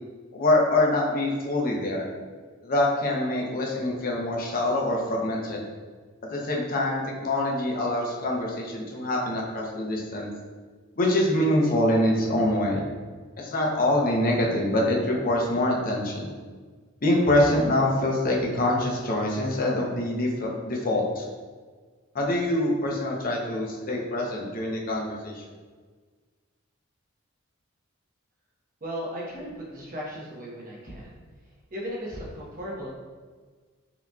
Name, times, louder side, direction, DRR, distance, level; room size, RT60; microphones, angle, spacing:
voice 1, 0.3-2.1 2.6-5.6 6.3-10.3 11.0-12.8 13.4-16.3 17.0-21.3 22.1-25.4, left 1 dB, 45° left, -2 dB, 0.7 m, -25 dB
voice 2, 28.8-31.1 31.7-32.9, equal, 45° right, -5 dB, 1.1 m, -36 dB
5.7 x 2.9 x 2.3 m, 1.5 s
head